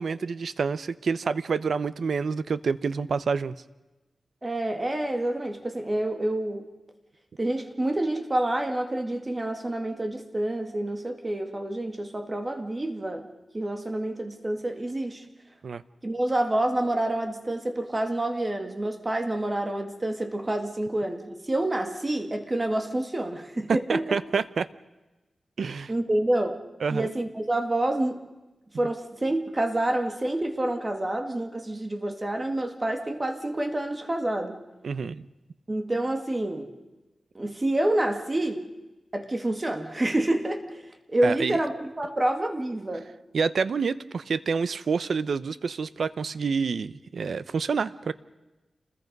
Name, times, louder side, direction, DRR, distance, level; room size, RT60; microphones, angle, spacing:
voice 1, 0.0-3.5 15.6-15.8 23.7-24.7 25.6-25.9 26.8-27.1 34.8-35.2 41.2-41.6 43.3-48.1, right 5 dB, 70° right, 15 dB, 0.7 m, -28 dB
voice 2, 4.4-6.7 7.4-13.3 13.5-15.3 16.0-24.0 25.9-26.6 26.9-28.2 28.8-34.6 35.7-36.7 37.3-38.6 39.1-43.1, right 1 dB, 20° right, 5 dB, 1.9 m, -28 dB
28.5 x 21.0 x 5.4 m, 1.1 s
wide cardioid pair, 145°, 0 cm